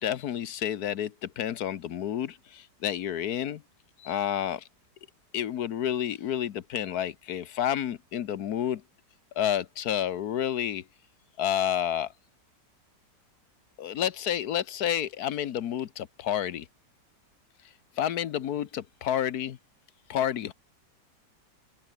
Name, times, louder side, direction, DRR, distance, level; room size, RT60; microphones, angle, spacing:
voice 1, 0.0-3.6 4.0-4.6 5.3-8.8 9.3-10.8 11.4-12.1 13.8-16.7 18.0-19.6 20.1-20.5, left 10 dB, 65° left, 1.4 m, -30 dB
open air
omnidirectional pair, 1.9 m